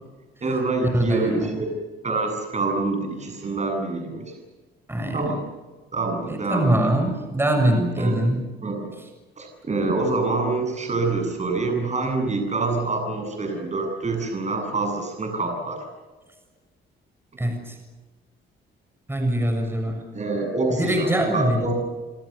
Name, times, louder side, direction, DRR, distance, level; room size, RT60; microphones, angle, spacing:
voice 1, 0.4-1.7 2.0-4.3 5.1-5.4 5.9-6.9 7.6-8.3 8.6-8.9 9.4-15.8 19.9-21.7, right 3 dB, 35° right, 3 dB, 7.8 m, -26 dB
voice 2, 0.9-1.6 4.9-5.2 6.3-8.4 17.4-17.8 19.1-20.0 20.7-21.7, right 1 dB, 10° right, 4 dB, 6.8 m, -23 dB
27.5 x 27.0 x 6.9 m, 1.3 s
cardioid pair, 90°, 20 cm